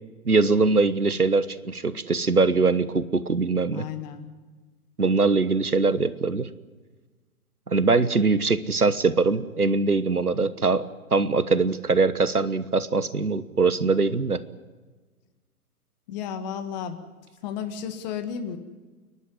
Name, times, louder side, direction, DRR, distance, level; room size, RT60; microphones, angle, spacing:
voice 1, 0.2-3.9 5.0-6.5 7.7-10.9 11.1-14.4, right 3 dB, 85° right, 14 dB, 1.2 m, -22 dB
voice 2, 3.7-4.2 16.1-17.0 17.4-18.6, left 8 dB, 30° left, 8 dB, 1.7 m, -33 dB
29.5 x 11.5 x 9.7 m, 1.3 s
figure-of-eight pair, 125°, 44 cm